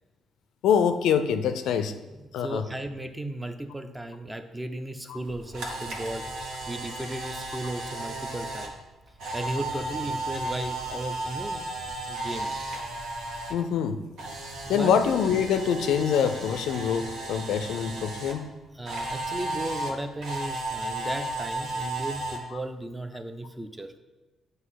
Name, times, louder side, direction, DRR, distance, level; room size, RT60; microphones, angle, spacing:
voice 1, 0.6-1.9 2.3-2.6 13.5-14.0 14.7-18.4, left 7 dB, 85° left, 10 dB, 0.4 m, -24 dB
voice 2, 2.2-6.2 6.7-8.7 9.3-11.7 12.0-12.5 14.6-14.9 18.7-23.9, right 1 dB, 10° right, 8 dB, 0.5 m, -35 dB
Camera, 5.2-13.5 13.8-18.3 18.9-22.4, right 2 dB, 75° right, 1.1 m, -34 dB
7.9 x 2.6 x 5.7 m, 1.1 s
cardioid pair, 90°, 0 cm